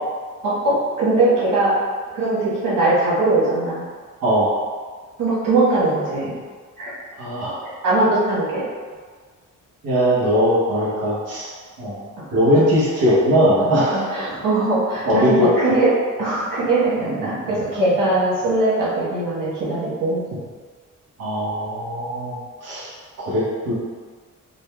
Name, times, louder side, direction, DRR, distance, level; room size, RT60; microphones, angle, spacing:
voice 1, 0.4-1.7 2.1-3.8 5.2-6.3 6.8-6.9 7.6-8.6 12.2-12.3 13.9-15.9 16.2-20.2, right 2 dB, 85° right, -9 dB, 1.4 m, -20 dB
voice 2, 4.2-4.5 7.2-7.6 9.8-11.5 11.8-12.0 12.3-14.0 15.1-15.8 21.2-22.9 23.2-23.7, equal, 50° right, -9 dB, 1.0 m, -19 dB
4.0 x 2.2 x 3.4 m, 1.5 s
wide cardioid pair, 140°, 32 cm